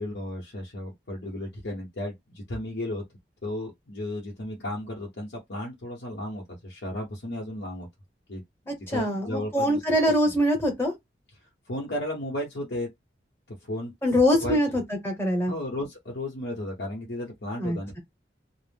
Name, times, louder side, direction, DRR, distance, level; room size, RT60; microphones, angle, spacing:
voice 1, 0.0-3.0 3.4-7.9 8.3-10.1 11.7-12.9 13.5-13.9 14.4-14.6 15.5-18.0, left 1 dB, 80° left, 0.9 m, -34 dB
voice 2, 8.9-10.9 14.0-15.5 17.6-18.0, equal, 15° left, 0.9 m, -24 dB
2.4 x 2.0 x 3.4 m
head